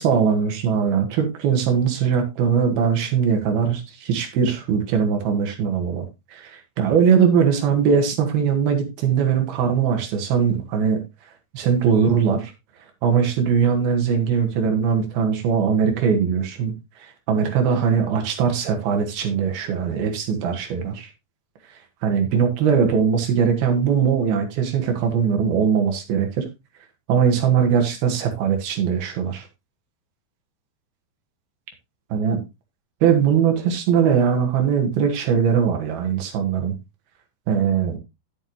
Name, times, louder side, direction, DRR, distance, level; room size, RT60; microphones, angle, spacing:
voice 1, 0.0-6.1 6.3-11.0 11.5-12.5 13.0-16.7 17.3-21.1 22.0-26.5 27.1-29.5 32.1-32.4 33.0-36.8 37.5-38.0, right 7 dB, 65° right, 4 dB, 3.5 m, -20 dB
10.5 x 7.9 x 3.1 m, 0.24 s
omnidirectional pair, 4.8 m